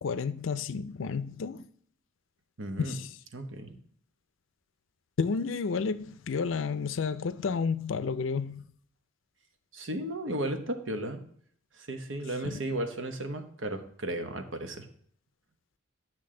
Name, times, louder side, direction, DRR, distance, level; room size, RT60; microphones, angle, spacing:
voice 1, 0.0-1.7 2.8-3.2 5.2-8.7 12.4-12.6, left 5 dB, 70° left, 0.5 m, -31 dB
voice 2, 2.6-2.9 3.3-3.8 9.7-11.2 11.8-14.9, right 1 dB, 65° right, 1.0 m, -34 dB
10.5 x 6.2 x 3.8 m
head